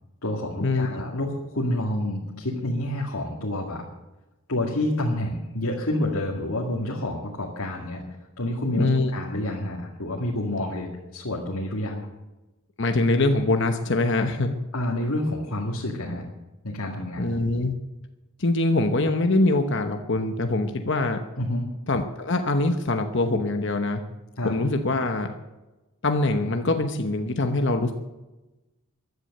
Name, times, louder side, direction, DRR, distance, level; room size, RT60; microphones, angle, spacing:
voice 1, 0.2-3.9 4.5-8.0 8.4-12.1 14.7-16.2 16.6-17.2 21.4-21.7 24.4-24.5, left 1 dB, 85° left, -3 dB, 2.2 m, -28 dB
voice 2, 8.8-9.1 12.8-14.5 17.2-17.7 18.4-21.2 21.9-24.0 24.4-25.3 26.0-27.9, left 2 dB, 55° left, 5 dB, 1.0 m, -23 dB
15.0 x 11.0 x 6.6 m, 1.1 s
head